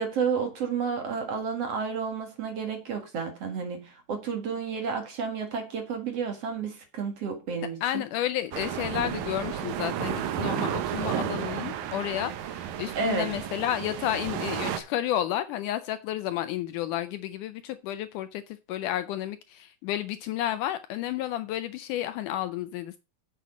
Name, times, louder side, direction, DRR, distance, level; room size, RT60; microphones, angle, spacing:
voice 1, 0.0-8.0 13.0-13.3, right 5 dB, 50° right, 2.6 m, -31 dB
voice 2, 7.8-23.0, left 12 dB, 80° left, 1.9 m, -31 dB
sound 1, 8.5-14.8, right 10 dB, 80° right, 2.7 m, -32 dB
8.4 x 7.3 x 5.1 m
omnidirectional pair, 4.1 m